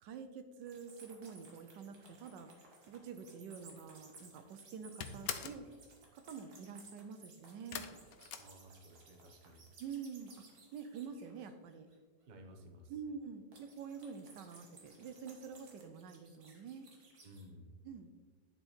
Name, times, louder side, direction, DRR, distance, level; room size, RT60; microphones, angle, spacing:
voice 1, 0.0-2.5 2.9-5.7 6.1-7.9 9.8-10.3 10.7-11.9 12.9-16.9 17.8-18.1, right 6 dB, 75° right, 9 dB, 1.2 m, -47 dB
sound 1, 0.6-11.9 13.5-17.5, right 3 dB, 55° right, 1.9 m, -60 dB
sound 2, 4.0-4.4 4.6-5.7 7.7-9.2 9.5-10.1 10.4-10.5 10.9-11.0, left 8 dB, 65° left, 0.9 m, -44 dB
voice 2, 8.4-9.7 12.3-12.9 17.2-17.7, equal, 40° right, 3 dB, 0.7 m, -56 dB
10.5 x 4.5 x 4.3 m, 1.5 s
omnidirectional pair, 2.0 m